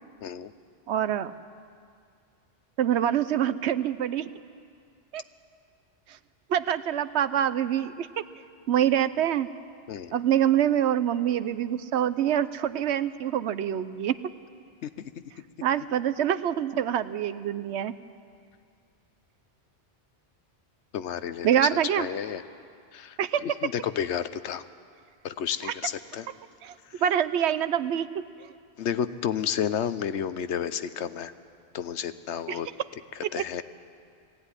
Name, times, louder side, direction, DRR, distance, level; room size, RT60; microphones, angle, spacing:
voice 1, 0.2-0.5 9.9-10.1 14.8-15.1 20.9-21.7 22.0-22.4 22.9-24.6 25.2-26.3 28.8-31.3 31.7-32.7 33.1-33.6, left 8 dB, 85° left, 13 dB, 1.1 m, -31 dB
voice 2, 0.9-1.3 2.8-4.3 5.1-5.2 6.5-8.1 8.7-9.5 10.1-14.2 15.6-17.9 21.4-22.1 23.2-23.4 26.6-26.7 27.0-28.2 32.5-32.6, right 10 dB, 75° right, 14 dB, 0.9 m, -25 dB
19.5 x 15.5 x 9.8 m, 2.3 s
omnidirectional pair, 1.1 m